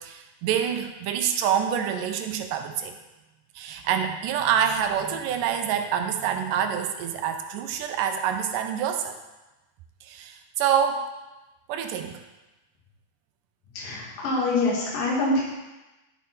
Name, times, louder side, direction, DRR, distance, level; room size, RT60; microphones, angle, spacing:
voice 1, 0.0-3.0 3.6-9.2 10.0-11.1 11.7-12.2, right 8 dB, 80° right, 6 dB, 2.2 m, -26 dB
voice 2, 13.7-15.4, left 2 dB, 75° left, -4 dB, 3.4 m, -25 dB
12.0 x 4.7 x 4.3 m, 1.1 s
omnidirectional pair, 4.0 m